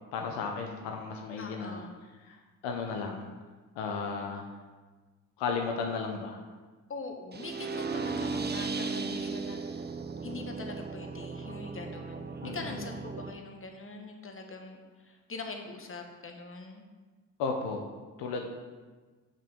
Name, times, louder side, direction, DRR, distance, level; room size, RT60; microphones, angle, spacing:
voice 1, 0.1-1.9 2.3-2.4 2.6-3.3 3.8-4.4 5.4-6.4 12.4-12.8 17.4-17.8 18.2-18.5, left 5 dB, 75° left, 3 dB, 0.9 m, -34 dB
voice 2, 1.4-2.0 6.9-9.9 10.2-16.9, left 3 dB, 30° left, 4 dB, 1.2 m, -43 dB
sound 1, 7.3-13.3, right 4 dB, 25° right, 0.7 m, -36 dB
7.4 x 5.7 x 3.6 m, 1.3 s
hypercardioid pair, 45°, 43 cm